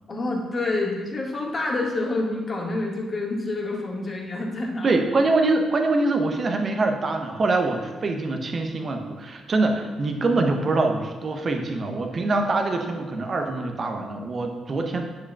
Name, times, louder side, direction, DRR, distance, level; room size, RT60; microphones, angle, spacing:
voice 1, 0.1-4.9, left 2 dB, 40° left, -2 dB, 1.8 m, -27 dB
voice 2, 4.8-15.0, right 2 dB, 40° right, 4 dB, 0.8 m, -24 dB
9.7 x 6.0 x 2.4 m, 1.2 s
figure-of-eight pair, 40°, 0 cm